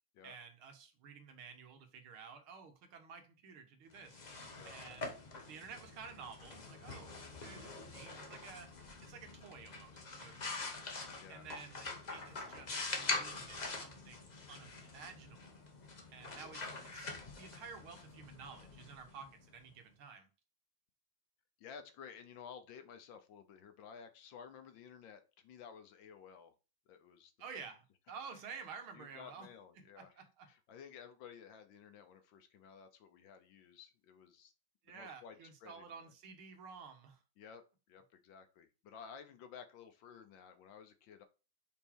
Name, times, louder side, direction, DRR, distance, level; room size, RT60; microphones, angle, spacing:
voice 1, 0.2-4.3 4.7-5.1 5.5-8.7 9.0-10.8 11.3-15.5 16.1-20.3 27.4-29.5 30.0-30.5 34.8-37.2, right 5 dB, 85° right, 6 dB, 2.0 m, -52 dB
sound 1, 3.9-19.6, left 3 dB, 40° left, 0.6 m, -45 dB
voice 2, 21.6-26.5 26.9-27.3 28.9-34.5 34.9-36.1 37.4-41.2, left 7 dB, 70° left, 8 dB, 1.5 m, -54 dB
5.5 x 4.1 x 4.4 m, 0.32 s
omnidirectional pair, 2.3 m